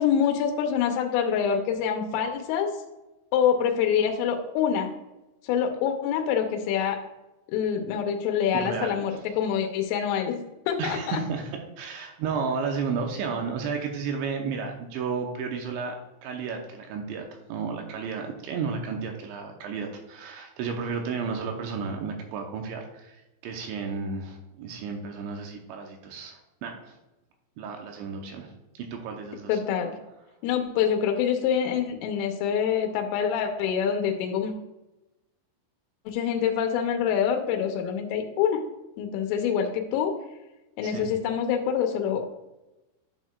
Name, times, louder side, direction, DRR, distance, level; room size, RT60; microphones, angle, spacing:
voice 1, 0.0-2.7 3.3-4.9 5.5-7.0 7.5-10.4 10.7-11.2 29.5-30.0 30.4-34.5 36.1-38.6 39.0-40.1 40.8-42.2, left 8 dB, 85° left, 3 dB, 3.3 m, -25 dB
voice 2, 8.5-9.0 10.8-16.0 16.2-23.2 23.4-26.9 27.6-29.6 40.8-41.1, right 5 dB, 80° right, 3 dB, 2.9 m, -33 dB
10.5 x 6.3 x 2.3 m, 1.0 s
omnidirectional pair, 5.6 m